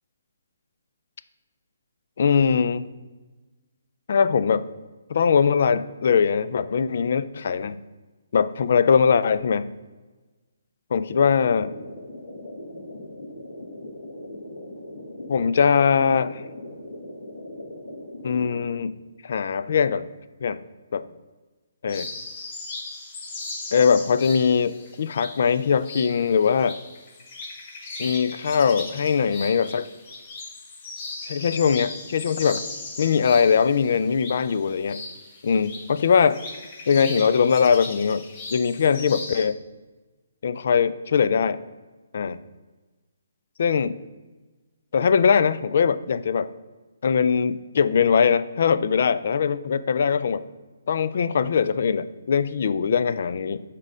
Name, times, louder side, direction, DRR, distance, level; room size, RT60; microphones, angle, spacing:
voice 1, 2.2-2.8 4.1-4.7 5.1-7.8 8.3-9.7 10.9-11.7 15.3-16.4 18.2-18.9 19.2-20.1 20.4-20.6 20.9-21.0 21.8-22.1 23.7-26.8 28.0-29.9 31.2-32.7 33.0-35.0 35.4-36.4 36.9-38.2 38.5-39.6 40.4-41.6 42.1-42.4 43.6-44.0 44.9-46.5 47.0-50.4 50.9-53.6, left 6 dB, 50° left, 15 dB, 0.3 m, -21 dB
sound 1, 11.1-18.6, left 1 dB, 75° left, 1.4 m, -39 dB
sound 2, 21.9-39.4, left 3 dB, 30° left, 0.9 m, -38 dB
6.4 x 3.7 x 5.1 m, 1.2 s
hypercardioid pair, 165°, 0 cm